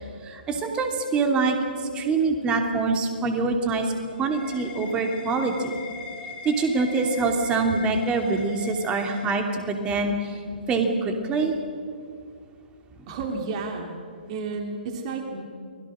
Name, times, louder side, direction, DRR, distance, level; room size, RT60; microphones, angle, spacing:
voice 1, 0.2-3.9 4.2-5.8 6.4-10.4 10.7-11.6, right 3 dB, 20° right, 4 dB, 2.9 m, -25 dB
sound 1, 3.6-10.0, left 4 dB, 15° left, 3.6 m, -41 dB
voice 2, 13.1-14.0 14.3-15.4, right 4 dB, 40° right, 4 dB, 2.9 m, -31 dB
29.5 x 21.0 x 6.5 m, 2.2 s
figure-of-eight pair, 125°, 5 cm